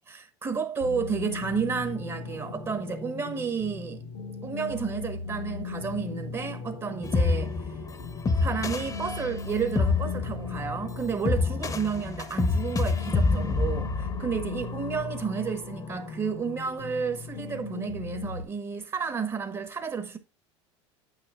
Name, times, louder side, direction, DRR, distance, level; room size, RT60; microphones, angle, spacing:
voice 1, 0.1-4.0 4.4-7.8 8.4-20.2, right 6 dB, 30° right, 1.2 m, -31 dB
sound 1, 0.8-18.4, left 4 dB, 80° left, 1.8 m, -38 dB
sound 2, 7.0-15.2, left 3 dB, 20° left, 1.0 m, -28 dB
9.2 x 8.2 x 2.5 m
hypercardioid pair, 80°, 15 cm